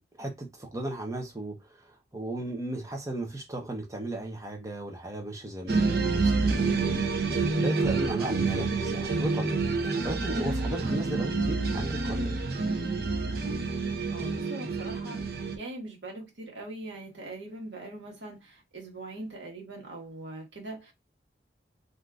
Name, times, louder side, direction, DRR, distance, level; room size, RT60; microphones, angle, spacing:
voice 1, 0.0-1.9 2.1-7.0 7.6-9.6 10.0-12.4, right 1 dB, 15° right, 0.6 m, -35 dB
sound 1, 5.7-15.6, right 3 dB, 55° right, 0.6 m, -28 dB
voice 2, 14.1-20.9, right 2 dB, 85° right, 1.2 m, -42 dB
3.5 x 2.6 x 2.3 m
head